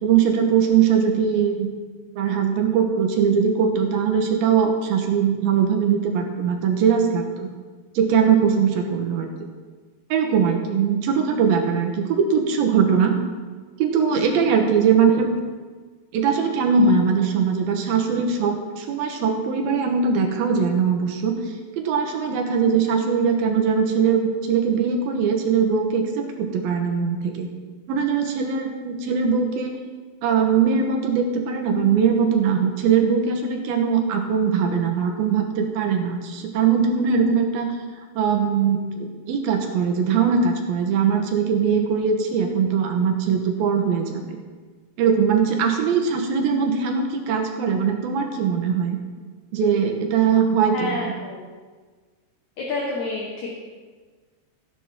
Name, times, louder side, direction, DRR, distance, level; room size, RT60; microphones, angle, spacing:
voice 1, 0.0-1.7 2.2-7.5 8.0-9.3 10.1-13.2 13.8-15.4 16.1-21.4 21.8-27.5 27.9-29.8 30.2-37.7 38.2-44.4 45.0-49.0 49.5-51.1, right 6 dB, 70° right, 3 dB, 2.8 m, -21 dB
voice 2, 14.5-14.8 50.7-51.4 52.6-53.5, left 2 dB, 60° left, -2 dB, 2.3 m, -29 dB
15.5 x 9.9 x 3.7 m, 1.4 s
omnidirectional pair, 4.6 m